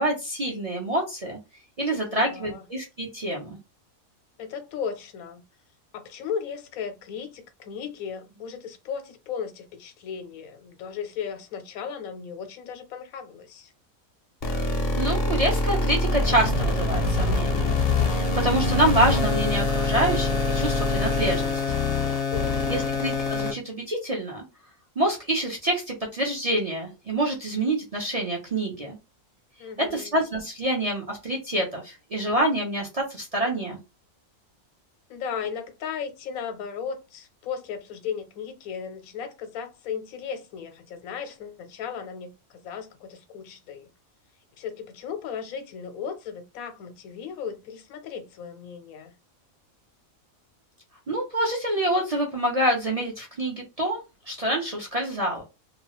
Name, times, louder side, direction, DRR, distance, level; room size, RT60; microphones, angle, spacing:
voice 1, 0.0-1.4 1.8-3.6 15.0-17.8 18.1-21.6 22.7-24.4 25.0-29.0 29.8-33.8 51.1-54.0 54.3-55.4, right 1 dB, 40° right, 0.5 m, -26 dB
voice 2, 1.9-2.6 4.4-5.4 5.9-13.7 22.3-22.9 29.6-30.1 35.1-42.3 42.6-43.9 44.6-49.1, left 7 dB, 80° left, 1.1 m, -36 dB
sound 1, 14.4-23.5, left 2 dB, 55° left, 0.7 m, -24 dB
2.8 x 2.3 x 2.9 m
omnidirectional pair, 1.5 m